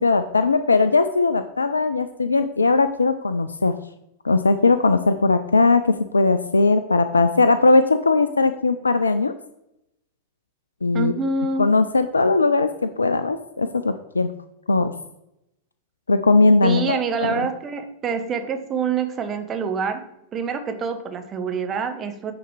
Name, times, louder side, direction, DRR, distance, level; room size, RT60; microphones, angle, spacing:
voice 1, 0.0-3.7 4.2-9.3 10.8-11.1 11.6-14.3 14.7-14.9 16.1-17.4, left 3 dB, 75° left, 10 dB, 0.4 m, -19 dB
voice 2, 10.9-11.7 16.6-20.1 20.3-22.3, right 5 dB, 25° right, 6 dB, 1.0 m, -26 dB
9.3 x 4.1 x 4.8 m, 0.84 s
figure-of-eight pair, 90°, 0 cm